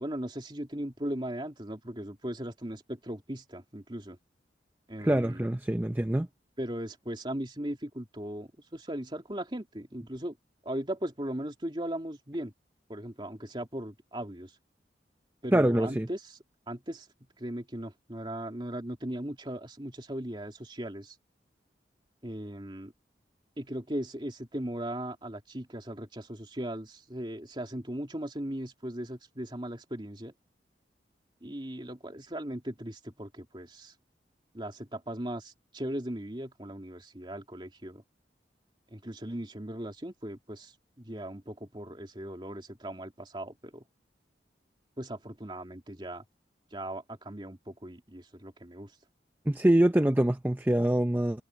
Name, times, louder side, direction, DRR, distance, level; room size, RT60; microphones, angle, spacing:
voice 1, 0.0-4.2 4.9-5.5 6.6-10.4 10.6-12.5 12.9-14.5 15.4-16.4 16.7-17.1 17.4-21.2 22.2-22.9 23.6-30.3 31.4-33.9 34.5-38.0 38.9-43.8 45.0-46.2 46.7-48.9, right 1 dB, 25° right, 2.9 m, -38 dB
voice 2, 5.0-6.3 15.5-16.1 49.5-51.4, right 1 dB, 10° right, 0.6 m, -24 dB
head